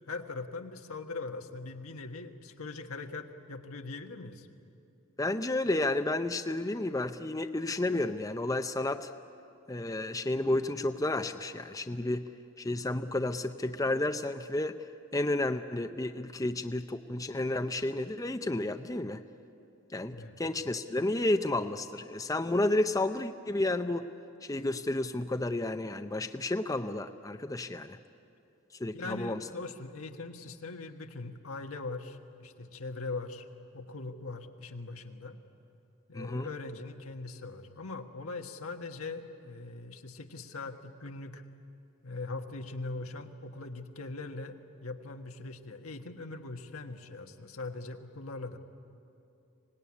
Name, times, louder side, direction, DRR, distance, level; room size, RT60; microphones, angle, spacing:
voice 1, 0.1-4.5 20.0-20.4 28.9-33.4 33.7-35.4 36.1-41.4 42.0-48.6, left 3 dB, 90° left, 5 dB, 1.5 m, -41 dB
voice 2, 5.2-9.1 9.7-12.3 12.6-14.8 15.1-19.2 19.9-24.1 24.4-28.0 28.8-29.4 36.1-36.5, left 2 dB, 15° left, 8 dB, 0.5 m, -31 dB
25.0 x 18.5 x 9.8 m, 2.7 s
head